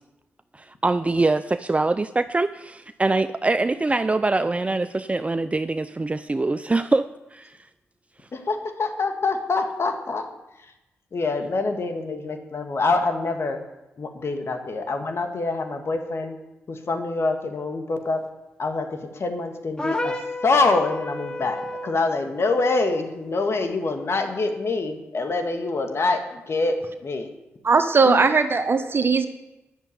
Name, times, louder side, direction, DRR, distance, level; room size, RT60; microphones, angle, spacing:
voice 1, 0.5-7.5, right 3 dB, 25° right, 12 dB, 0.5 m, -24 dB
voice 2, 8.3-10.2 11.1-13.6 14.0-16.4 16.7-18.2 18.6-27.3 28.1-28.2, left 3 dB, 55° left, 5 dB, 1.9 m, -25 dB
sound 1, 19.8-22.0, left 1 dB, 15° left, 1.3 m, -30 dB
voice 3, 27.6-29.3, right 4 dB, 50° right, 9 dB, 1.2 m, -19 dB
10.0 x 6.9 x 8.7 m, 0.97 s
supercardioid pair, 45°, 5 cm